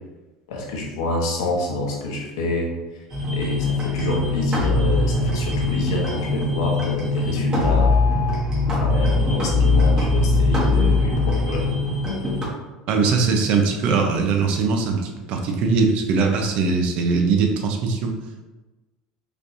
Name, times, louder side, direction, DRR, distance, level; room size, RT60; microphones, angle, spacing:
voice 1, 0.5-3.0 3.3-7.9 8.7-11.7, left 2 dB, 85° left, -1 dB, 1.1 m, -27 dB
sound 1, 3.1-12.5, left 2 dB, 30° right, 1.5 m, -21 dB
voice 2, 12.9-18.1, right 4 dB, 60° right, 3 dB, 0.7 m, -21 dB
5.0 x 3.1 x 2.6 m, 1.1 s
supercardioid pair, 95°, 2 cm